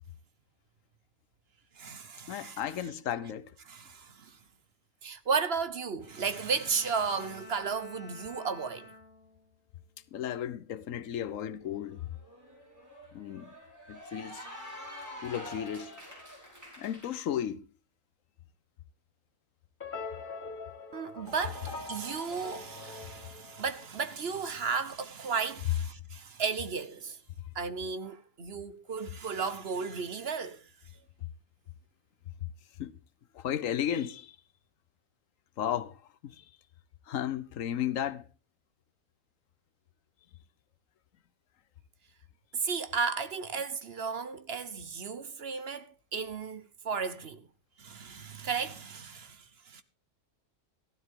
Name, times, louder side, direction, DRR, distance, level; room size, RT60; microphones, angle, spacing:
voice 1, 1.8-2.6 3.7-4.4 5.0-8.9 20.9-27.2 27.5-30.7 42.5-47.5 47.8-49.8, right 5 dB, 55° right, 1.3 m, -34 dB
voice 2, 2.3-3.5 10.1-12.1 13.1-13.5 13.9-14.5 15.2-16.0 16.8-17.7 32.8-33.0 33.3-34.4 35.6-36.4 37.1-38.3, left 10 dB, 90° left, 1.2 m, -34 dB
Bowed string instrument, 6.0-9.6 10.0-10.4, left 2 dB, 60° left, 2.1 m, -51 dB
Cheering / Applause, 11.7-17.1, equal, 15° right, 5.1 m, -47 dB
sound 1, 19.8-24.1, left 4 dB, 40° left, 1.6 m, -43 dB
15.0 x 12.5 x 3.7 m
omnidirectional pair, 1.3 m